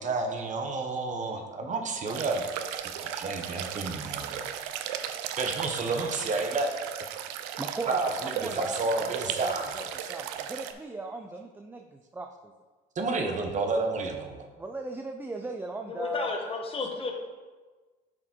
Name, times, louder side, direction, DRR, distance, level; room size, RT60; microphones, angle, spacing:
voice 1, 0.0-2.4 2.8-4.4 5.4-6.7 7.9-9.8 12.9-14.4, right 3 dB, 35° right, 3 dB, 1.1 m, -30 dB
sound 1, 2.1-10.7, right 10 dB, 90° right, 0.6 m, -36 dB
voice 2, 7.6-8.1 8.4-8.8 9.2-9.8 10.1-12.5 14.6-16.3, right 3 dB, 10° right, 4 dB, 0.4 m, -38 dB
voice 3, 15.9-17.1, left 3 dB, 25° left, 2 dB, 1.3 m, -32 dB
7.1 x 5.0 x 4.5 m, 1.3 s
cardioid pair, 110°, 21 cm